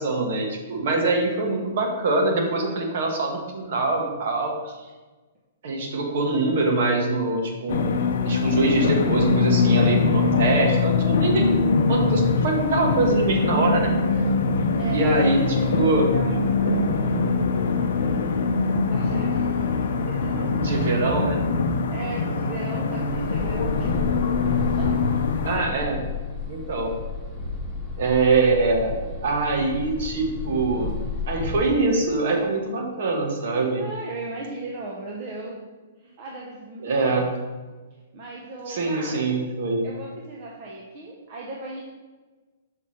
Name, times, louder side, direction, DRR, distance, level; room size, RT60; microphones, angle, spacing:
voice 1, 0.0-4.5 5.6-7.9 8.2-13.9 14.9-16.1 20.6-21.4 25.4-26.0 26.5-26.9 28.0-28.9 29.2-31.0 31.3-33.8 36.8-37.3 38.7-39.9, right 3 dB, 50° right, 2 dB, 1.2 m, -23 dB
sound 1, 7.7-25.6, left 4 dB, 65° left, 0.5 m, -23 dB
voice 2, 14.8-17.8 18.9-21.2 21.7-24.0 24.8-24.9 33.5-35.6 36.0-37.3 38.1-39.2 39.8-41.8, right 2 dB, 30° right, -2 dB, 0.7 m, -38 dB
sound 2, 23.1-31.6, left 3 dB, ahead, 0.9 m, -31 dB
5.7 x 3.1 x 5.6 m, 1.3 s
hypercardioid pair, 170°, 0 cm